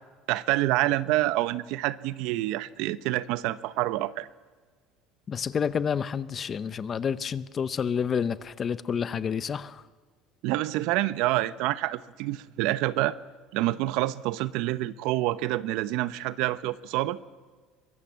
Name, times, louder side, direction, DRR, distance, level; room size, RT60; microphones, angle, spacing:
voice 1, 0.3-4.3 10.4-13.2 13.5-17.2, right 16 dB, 70° right, 0.9 m, -27 dB
voice 2, 5.3-9.8, left 7 dB, 25° left, 0.7 m, -29 dB
23.5 x 22.0 x 7.5 m
cardioid pair, 155°, 0 cm